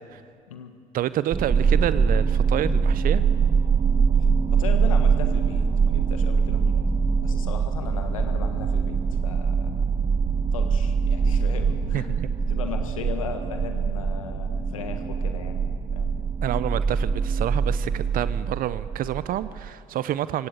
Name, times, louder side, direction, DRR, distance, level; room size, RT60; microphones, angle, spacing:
voice 1, 0.9-3.2 11.9-12.3 16.4-20.5, right 12 dB, 60° right, 16 dB, 0.6 m, -28 dB
sound 1, 1.3-19.7, right 5 dB, 35° right, 1.1 m, -23 dB
voice 2, 4.5-6.8 7.2-9.8 10.5-12.2 12.5-16.1, left 6 dB, 90° left, 7 dB, 1.5 m, -37 dB
23.0 x 17.5 x 8.1 m, 2.2 s
hypercardioid pair, 50°, 17 cm